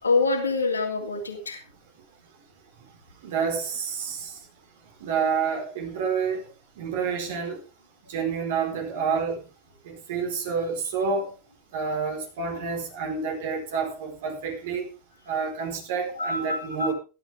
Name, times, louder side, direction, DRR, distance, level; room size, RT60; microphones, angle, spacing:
voice 1, 0.0-1.6 16.1-16.9, left 3 dB, 75° left, 3.1 m, -26 dB
voice 2, 3.2-4.3 5.0-6.4 6.8-7.6 8.1-9.4 9.8-11.3 11.7-14.8 15.3-16.9, right 5 dB, 55° right, 4.5 m, -28 dB
16.0 x 12.0 x 3.5 m
figure-of-eight pair, 90°, 0 cm